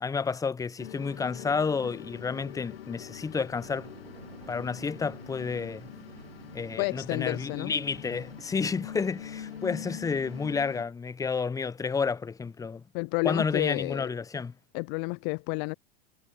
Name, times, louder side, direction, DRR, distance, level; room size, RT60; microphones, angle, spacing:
voice 1, 0.0-3.9 4.5-5.9 6.5-12.8 13.2-14.5, left 5 dB, 10° left, 0.8 m, -30 dB
sound 1, 0.8-10.8, left 10 dB, 70° left, 2.2 m, -44 dB
sound 2, 3.6-10.6, right 7 dB, 80° right, 2.7 m, -51 dB
voice 2, 6.8-7.8 12.9-14.1 14.7-15.7, left 39 dB, 35° left, 0.4 m, -30 dB
figure-of-eight pair, 90°, 30 cm